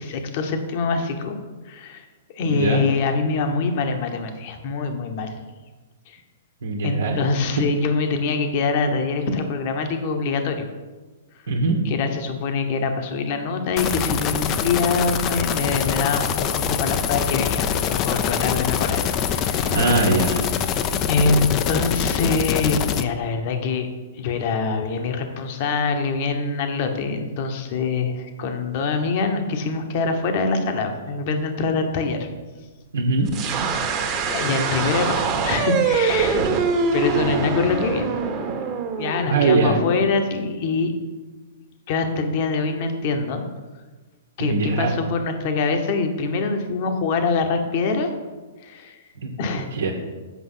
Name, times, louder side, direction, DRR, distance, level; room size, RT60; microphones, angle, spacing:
voice 1, 0.0-1.4 1.6-2.0 2.4-5.3 6.1-6.2 6.8-10.7 11.8-19.0 19.3-20.1 21.1-23.9 24.2-32.3 34.1-36.5 36.9-38.1 39.0-41.0 41.9-43.4 44.4-48.1 48.6-48.9 49.4-49.7, left 4 dB, 50° left, 5 dB, 1.2 m, -24 dB
voice 2, 2.5-2.9 6.6-7.2 11.5-11.8 19.7-20.5 32.9-33.6 39.3-39.8 44.4-44.9 49.2-49.3 49.7-49.9, right 3 dB, 80° right, 0 dB, 1.3 m, -21 dB
sound 1, 13.8-23.0, left 8 dB, 30° left, 0.6 m, -24 dB
sound 2, 33.3-40.1, right 5 dB, 30° right, 1.3 m, -24 dB
8.5 x 5.3 x 5.7 m, 1.3 s
hypercardioid pair, 125°, 0 cm